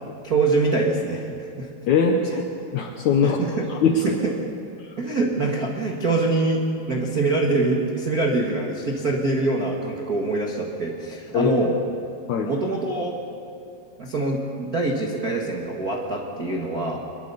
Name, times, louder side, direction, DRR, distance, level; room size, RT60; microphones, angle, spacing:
voice 1, 0.2-1.7 3.2-3.7 4.0-4.3 5.0-11.7 12.4-13.1 14.0-17.0, right 2 dB, 85° right, -1 dB, 0.8 m, -24 dB
voice 2, 1.9-2.4 2.7-3.4 3.7-4.2 4.8-4.9 11.3-11.5 12.3-12.5, left 5 dB, 75° left, 2 dB, 1.8 m, -21 dB
25.0 x 22.0 x 7.0 m, 2.5 s
omnidirectional pair, 5.1 m